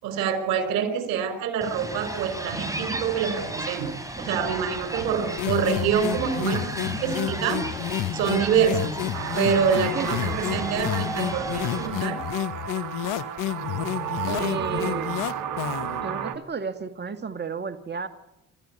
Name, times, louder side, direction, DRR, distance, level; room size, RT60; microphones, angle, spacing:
voice 1, 0.0-3.9 4.2-7.7 8.1-12.2, right 7 dB, 80° right, 9 dB, 5.0 m, -26 dB
sound 1, 1.6-11.9, right 1 dB, 10° right, 6.8 m, -35 dB
sound 2, 5.4-16.0, left 13 dB, 70° left, 1.0 m, -30 dB
sound 3, 9.1-16.4, right 9 dB, 65° right, 2.7 m, -33 dB
voice 2, 9.9-10.4 14.2-15.3 16.0-18.1, right 4 dB, 30° right, 9 dB, 2.0 m, -33 dB
28.0 x 14.0 x 9.8 m, 0.95 s
supercardioid pair, 65°, 33 cm